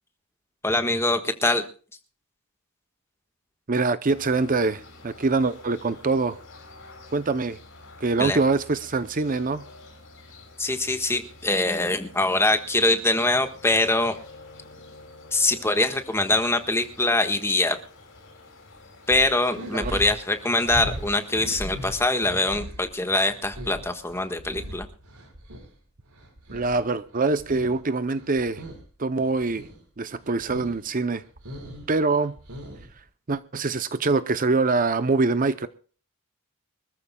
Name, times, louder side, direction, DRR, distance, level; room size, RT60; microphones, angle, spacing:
voice 1, 0.6-1.6 8.2-8.4 10.6-14.2 15.3-17.8 19.1-24.9, left 2 dB, 10° left, 1.5 m, -23 dB
voice 2, 3.7-6.4 7.1-7.6 8.0-9.7 19.8-20.0 26.5-28.6 29.0-29.7 30.0-31.2 31.9-32.4 33.3-35.7, right 3 dB, 40° right, 0.7 m, -24 dB
sound 1, 4.1-22.1, left 2 dB, 60° left, 6.3 m, -48 dB
sound 2, 19.1-25.7 26.1-27.8 28.1-28.9 29.2-29.8 30.2-30.8 31.1-33.0, equal, 85° right, 5.2 m, -39 dB
25.5 x 14.0 x 2.3 m
head